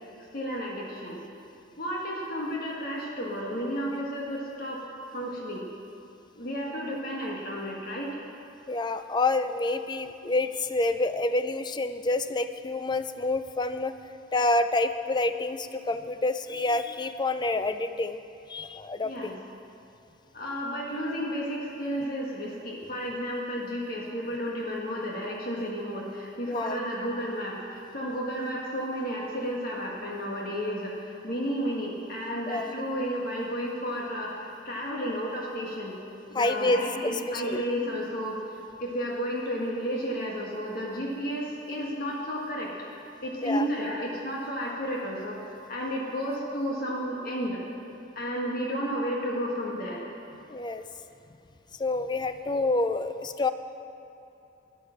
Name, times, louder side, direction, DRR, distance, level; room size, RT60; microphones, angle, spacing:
voice 1, 0.3-1.2 1.8-4.8 5.1-5.7 6.4-8.2 19.0-19.3 20.3-36.0 36.3-38.4 38.8-42.7 43.2-45.4 45.7-47.6 48.1-50.0, equal, 50° left, -3 dB, 1.6 m, -32 dB
voice 2, 8.7-13.9 14.3-18.2 18.5-19.4 26.5-26.8 32.4-32.7 36.3-37.6 43.4-43.7 50.5-50.8 51.8-53.5, left 2 dB, 25° left, 10 dB, 0.4 m, -28 dB
13.0 x 9.9 x 6.4 m, 2.8 s
head